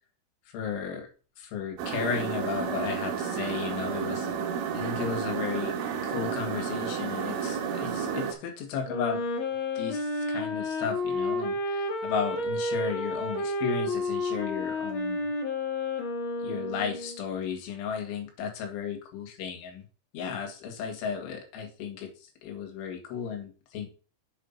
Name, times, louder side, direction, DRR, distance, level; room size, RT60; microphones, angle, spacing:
voice 1, 0.5-1.1 1.4-4.3 4.7-5.8 6.0-9.2 9.8-15.3 16.4-19.8 20.1-22.1 22.4-23.9, left 7 dB, 75° left, 3 dB, 4.2 m, -34 dB
sound 1, 1.8-8.3, right 7 dB, 75° right, 4.0 m, -31 dB
Wind instrument woodwind instrument, 8.8-17.2, left 2 dB, 55° left, 2.0 m, -31 dB
8.2 x 5.6 x 5.5 m, 0.36 s
omnidirectional pair, 5.8 m